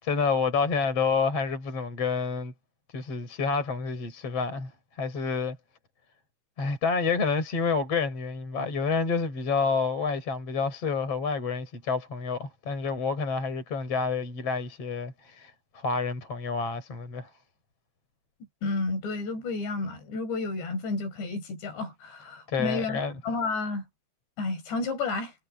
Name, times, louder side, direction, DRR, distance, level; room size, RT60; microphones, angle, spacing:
voice 1, 0.0-2.5 2.9-4.7 5.0-5.6 6.6-17.3 22.5-23.1, left 5 dB, 35° left, 5.9 m, -28 dB
voice 2, 18.6-23.8 24.4-25.3, left 3 dB, 75° left, 7.9 m, -31 dB
omnidirectional pair, 5.0 m